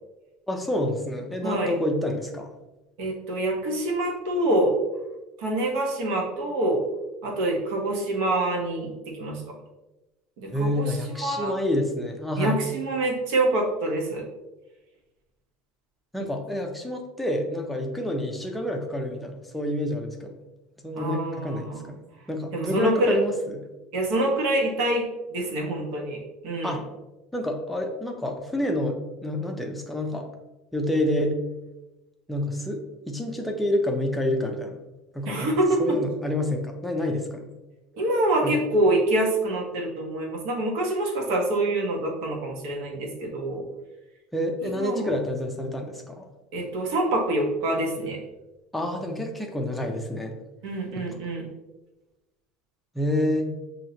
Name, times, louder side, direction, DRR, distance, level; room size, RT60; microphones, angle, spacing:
voice 1, 0.5-2.5 10.5-12.6 16.1-20.3 20.8-22.0 22.3-23.6 26.6-26.9 27.3-30.3 30.7-31.4 32.3-34.8 35.1-37.5 38.4-38.6 44.3-46.3 48.7-50.4 51.0-51.1 52.9-53.5, left 1 dB, 5° left, 1 dB, 0.5 m, -28 dB
voice 2, 1.4-1.7 3.0-4.8 5.4-6.8 7.2-9.5 10.4-11.5 12.4-14.3 21.0-21.9 22.5-23.2 23.9-26.8 35.3-36.0 37.9-43.6 44.6-45.1 46.5-48.2 50.6-51.5, right 1 dB, 65° right, 0 dB, 1.2 m, -26 dB
5.9 x 2.8 x 2.8 m, 1.0 s
cardioid pair, 165°, 2 cm